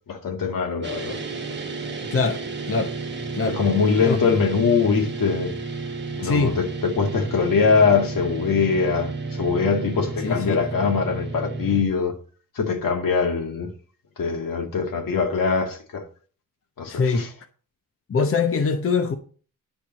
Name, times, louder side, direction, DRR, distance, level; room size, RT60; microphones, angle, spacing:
voice 1, 0.1-1.2 3.4-5.5 6.2-12.1 12.6-13.7 14.2-16.0 16.8-17.3, left 5 dB, 80° left, 2.0 m, -22 dB
sound 1, 0.8-11.8, right 3 dB, 35° right, 1.4 m, -32 dB
voice 2, 6.2-6.6 10.2-10.6 16.9-17.2 18.1-19.1, left 4 dB, 40° left, 0.8 m, -22 dB
10.0 x 4.7 x 7.2 m
wide cardioid pair, 170°, 33 cm